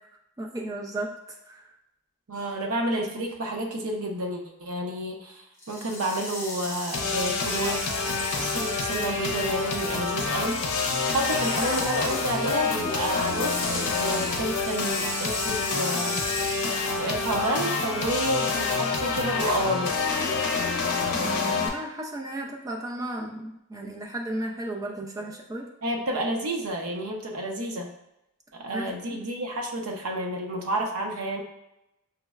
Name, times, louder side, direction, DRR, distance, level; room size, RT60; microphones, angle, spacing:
voice 1, 0.4-1.6 21.1-25.7 28.7-29.2, right 1 dB, 15° right, 0 dB, 0.4 m, -34 dB
voice 2, 2.3-7.9 8.3-10.6 11.1-16.2 16.9-20.1 25.8-27.9 28.5-31.4, right 1 dB, 75° right, 1 dB, 0.6 m, -30 dB
sound 1, 5.6-17.2, left 2 dB, 10° left, 0.7 m, -36 dB
sound 2, 6.9-21.7, left 4 dB, 85° left, 0.6 m, -27 dB
5.4 x 2.0 x 2.3 m, 0.87 s
head